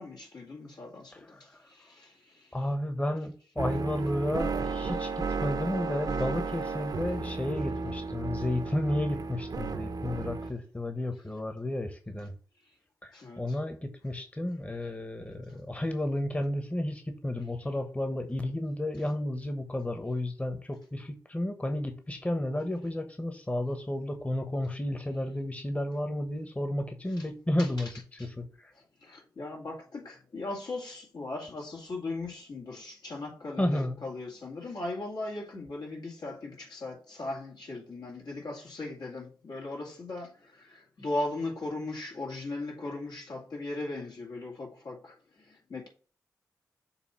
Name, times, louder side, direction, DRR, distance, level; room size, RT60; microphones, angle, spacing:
voice 1, 0.0-1.1 1.8-2.1 13.1-13.5 27.2-27.3 27.6-27.9 28.2-28.3 29.0-40.3 40.6-45.1 45.7-45.9, left 2 dB, 75° left, 2.4 m, -38 dB
voice 2, 2.5-12.3 13.0-13.8 14.0-27.9 28.4-28.7 33.6-34.0, left 1 dB, 20° left, 1.1 m, -32 dB
sound 1, 3.6-10.5, right 4 dB, 65° right, 0.8 m, -33 dB
7.1 x 2.7 x 5.5 m
cardioid pair, 45°, 7 cm